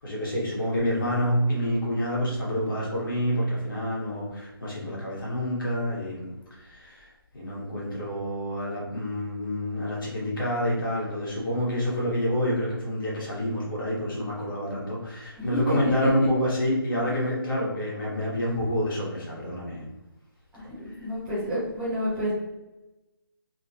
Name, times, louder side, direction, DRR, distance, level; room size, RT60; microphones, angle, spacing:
voice 1, 0.0-19.9 20.8-21.1, equal, 60° left, -6 dB, 1.5 m, -28 dB
voice 2, 20.5-22.3, equal, 5° right, -12 dB, 0.8 m, -29 dB
3.2 x 2.3 x 2.8 m, 1.0 s
figure-of-eight pair, 155°, 12 cm